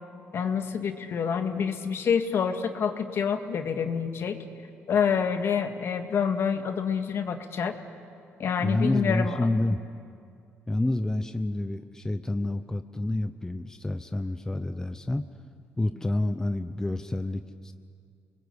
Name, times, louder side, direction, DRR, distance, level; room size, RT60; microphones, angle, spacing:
voice 1, 0.3-4.4 4.9-7.8 8.4-9.4, left 7 dB, 60° left, 6 dB, 2.0 m, -27 dB
voice 2, 8.6-9.8 10.7-15.2 15.8-17.7, left 2 dB, 10° left, 9 dB, 0.8 m, -28 dB
29.0 x 21.0 x 8.3 m, 2.3 s
cardioid pair, 95°, 5 cm